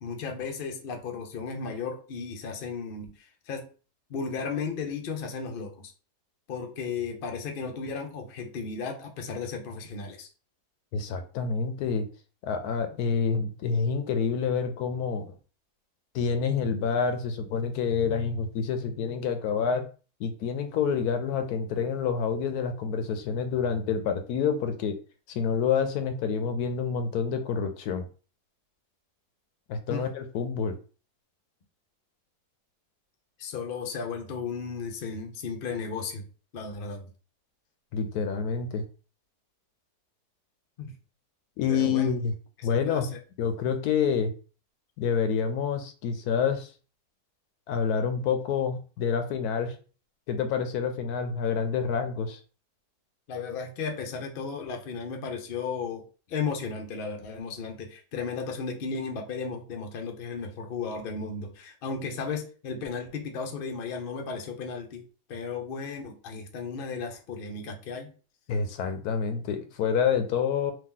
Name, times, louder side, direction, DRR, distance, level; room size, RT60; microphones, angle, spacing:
voice 1, 0.0-3.7 4.1-5.9 6.5-10.3 29.9-30.1 33.4-36.3 36.5-37.1 40.8-40.9 41.7-42.1 42.8-43.2 53.3-68.1, left 5 dB, 50° left, 3 dB, 0.7 m, -35 dB
voice 2, 10.9-12.1 12.4-15.3 16.1-19.9 20.2-25.0 25.3-28.1 29.7-30.7 37.9-38.8 41.6-42.3 42.6-43.1 43.4-44.3 45.0-46.7 47.7-49.8 50.3-52.4 68.5-70.7, left 6 dB, 75° left, 8 dB, 1.0 m, -28 dB
2.9 x 2.8 x 3.7 m, 0.37 s
omnidirectional pair, 1.7 m